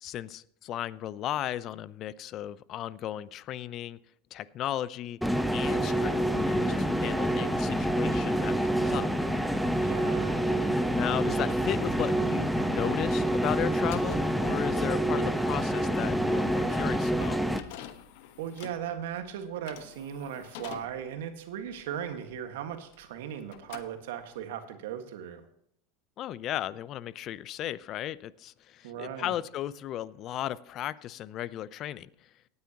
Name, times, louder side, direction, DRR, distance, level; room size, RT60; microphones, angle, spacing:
voice 1, 0.0-4.0 4.3-5.2 5.5-9.1 10.7-17.4 26.2-32.3, left 12 dB, 45° left, 19 dB, 0.6 m, -35 dB
sound 1, 5.2-17.6, right 1 dB, ahead, 0.9 m, -27 dB
voice 2, 9.6-10.4 18.4-25.4 28.8-29.4, right 9 dB, 75° right, 7 dB, 1.6 m, -38 dB
sound 2, 13.9-23.2 23.5-24.5, left 11 dB, 70° left, 1.1 m, -48 dB
18.0 x 9.5 x 2.9 m, 0.72 s
hypercardioid pair, 95°, 0 cm